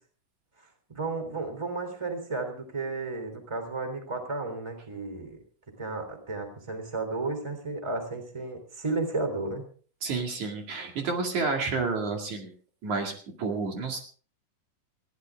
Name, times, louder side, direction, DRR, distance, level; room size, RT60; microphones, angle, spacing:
voice 1, 0.6-5.4 5.8-9.6, right 3 dB, 10° right, 7 dB, 3.1 m, -33 dB
voice 2, 10.0-12.5 12.8-14.0, right 4 dB, 60° right, 3 dB, 3.6 m, -30 dB
21.0 x 15.5 x 3.6 m, 0.42 s
omnidirectional pair, 3.9 m